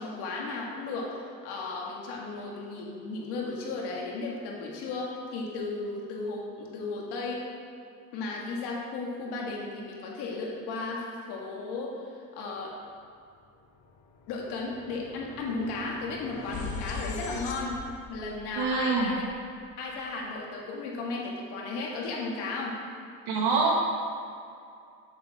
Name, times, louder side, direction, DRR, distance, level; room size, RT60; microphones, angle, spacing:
voice 1, 0.0-7.4 8.1-12.0 12.3-12.8 14.3-17.8 18.1-19.2 19.8-22.8, left 3 dB, 65° left, -2 dB, 1.8 m, -35 dB
sound 1, 13.4-13.5 13.8-20.1, left 4 dB, 45° left, 1.0 m, -42 dB
voice 2, 18.6-19.1 23.3-23.7, right 4 dB, 65° right, -2 dB, 1.8 m, -25 dB
7.5 x 6.9 x 3.6 m, 2.4 s
supercardioid pair, 110°, 42 cm